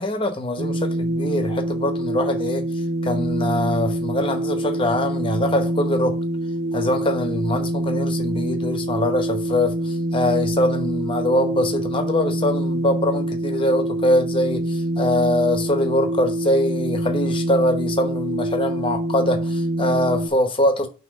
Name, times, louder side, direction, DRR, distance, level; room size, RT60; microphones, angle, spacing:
voice 1, 0.0-2.6 3.0-6.2 6.7-20.9, left 1 dB, 25° left, 0.9 m, -23 dB
sound 1, 0.6-20.3, right 1 dB, 85° right, 0.7 m, -25 dB
6.2 x 3.0 x 5.5 m
head